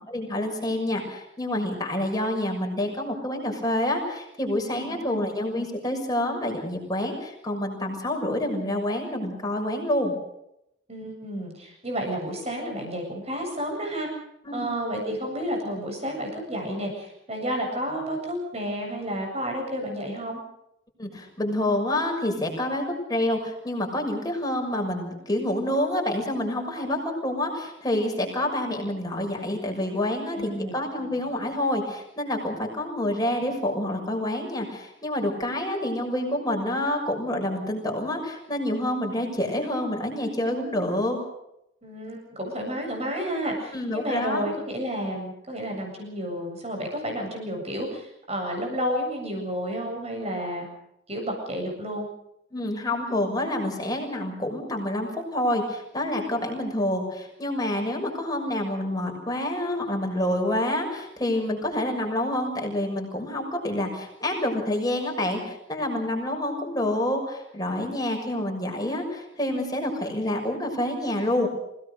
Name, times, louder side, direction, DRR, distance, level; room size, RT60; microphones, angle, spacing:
voice 1, 0.1-10.1 14.4-14.6 21.0-22.8 23.1-41.2 43.7-44.5 52.5-71.5, left 1 dB, 20° left, 1 dB, 6.5 m, -28 dB
voice 2, 4.7-5.3 10.9-14.1 14.5-20.4 30.3-30.8 41.8-50.7 51.1-52.1, equal, 35° right, 1 dB, 7.9 m, -31 dB
27.5 x 18.5 x 6.6 m, 0.79 s
head